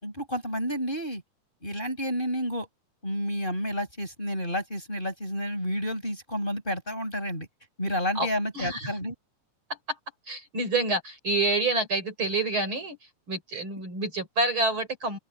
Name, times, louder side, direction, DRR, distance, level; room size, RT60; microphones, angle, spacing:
voice 1, 0.0-1.2 1.6-2.7 3.0-7.5 7.8-9.1 13.5-13.6, equal, 15° left, 5.9 m, -30 dB
voice 2, 8.5-8.9 10.3-13.0 13.3-15.2, right 2 dB, 40° right, 5.0 m, -27 dB
open air
omnidirectional pair, 3.4 m